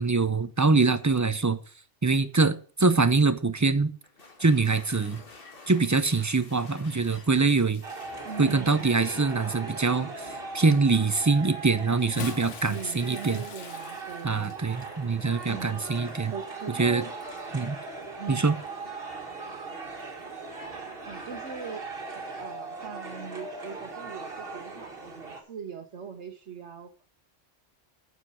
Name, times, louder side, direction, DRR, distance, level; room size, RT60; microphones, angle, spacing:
voice 1, 0.0-1.6 2.0-3.9 4.4-5.2 5.7-7.8 8.4-10.1 10.5-13.4 14.2-16.3 16.8-17.0 17.5-17.8 18.3-18.6, right 4 dB, 20° right, 0.5 m, -24 dB
sound 1, 4.0-9.6, left 3 dB, 50° left, 2.1 m, -51 dB
sound 2, 7.8-25.4, right 3 dB, 50° right, 2.3 m, -39 dB
voice 2, 8.2-9.2 12.7-14.5 15.5-15.8 16.3-17.1 18.2-18.6 21.0-21.8 22.1-27.1, right 6 dB, 70° right, 1.4 m, -41 dB
Bathtub (filling or washing) / Splash splatter, 11.9-17.6 18.5-18.7 20.1-20.2, left 7 dB, 75° left, 1.3 m, -44 dB
9.5 x 6.6 x 6.2 m
omnidirectional pair, 1.3 m